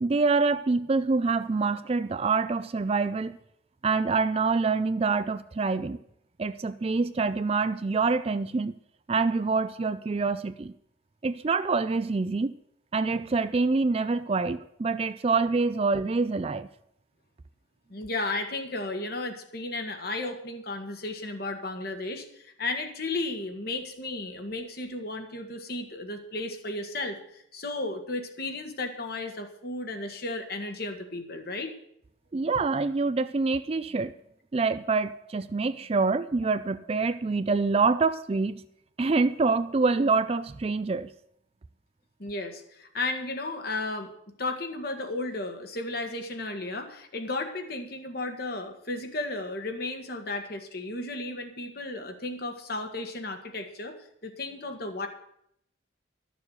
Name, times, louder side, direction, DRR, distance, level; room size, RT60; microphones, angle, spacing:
voice 1, 0.0-3.4 3.8-6.0 6.4-8.7 9.1-10.7 11.2-12.5 12.9-16.7 32.3-34.1 34.5-38.6 39.0-41.1, right 4 dB, 30° right, 13 dB, 0.4 m, -26 dB
voice 2, 17.9-31.7 42.2-44.1 44.4-54.0 54.2-55.1, left 2 dB, 50° left, 5 dB, 1.5 m, -34 dB
12.5 x 7.0 x 8.1 m, 0.74 s
head